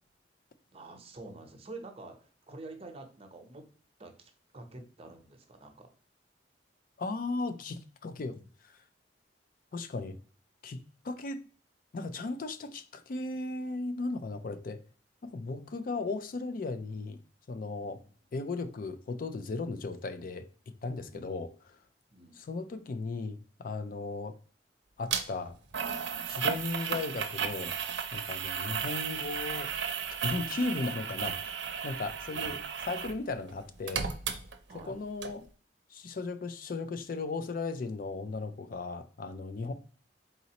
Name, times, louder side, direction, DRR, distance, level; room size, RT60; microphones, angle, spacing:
voice 1, 0.7-3.6 4.0-5.9 18.0-18.1 21.1-21.5 22.1-22.4 34.7-35.0 39.6-39.7, right 2 dB, 35° right, 0.8 m, -48 dB
voice 2, 7.0-8.4 8.6-8.8 9.7-10.2 10.6-11.4 11.9-14.8 15.2-17.2 17.5-18.0 18.3-21.8 22.4-24.4 25.0-25.6 26.3-27.7 28.1-29.7 30.2-31.6 31.8-34.1 34.7-35.5 35.9-39.7, left 3 dB, 50° left, 0.4 m, -36 dB
sound 1, 25.1-25.2 25.7-33.2 33.5-34.9 35.2-35.3, right 7 dB, 80° right, 0.6 m, -34 dB
4.0 x 4.0 x 2.9 m
head